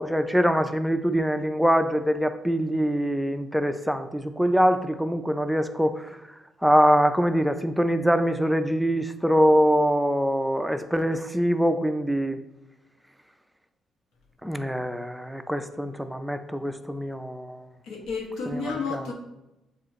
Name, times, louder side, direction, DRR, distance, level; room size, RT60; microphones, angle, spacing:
voice 1, 0.0-6.2 6.6-12.4 14.4-17.7 18.5-18.6 18.9-19.1, equal, ahead, 8 dB, 0.4 m, -24 dB
voice 2, 17.9-19.1, left 4 dB, 90° left, 0 dB, 1.1 m, -31 dB
7.1 x 2.5 x 3.0 m, 0.94 s
cardioid pair, 90°, 0 cm